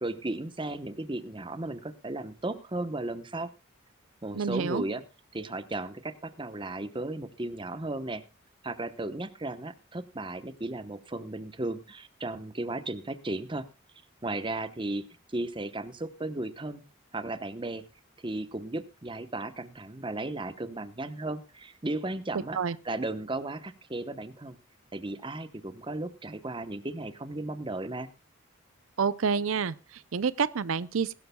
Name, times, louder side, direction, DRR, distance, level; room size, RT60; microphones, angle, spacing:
voice 1, 0.0-3.5 4.2-5.0 5.3-8.2 8.6-13.7 14.2-16.8 17.1-17.9 18.2-24.6 24.9-28.1, right 2 dB, 25° right, 0.9 m, -35 dB
voice 2, 4.3-4.8 22.5-22.8 29.0-31.1, right 5 dB, 80° right, 0.5 m, -28 dB
20.5 x 12.5 x 2.3 m
head